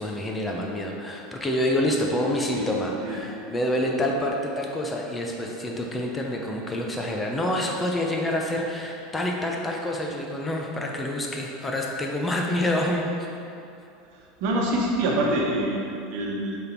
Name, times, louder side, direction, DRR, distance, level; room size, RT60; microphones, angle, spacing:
voice 1, 0.0-13.1, left 1 dB, 20° left, 0 dB, 0.9 m, -27 dB
voice 2, 14.4-16.6, right 1 dB, 65° right, -1 dB, 1.1 m, -25 dB
6.6 x 3.7 x 4.5 m, 2.6 s
hypercardioid pair, 90°, 0 cm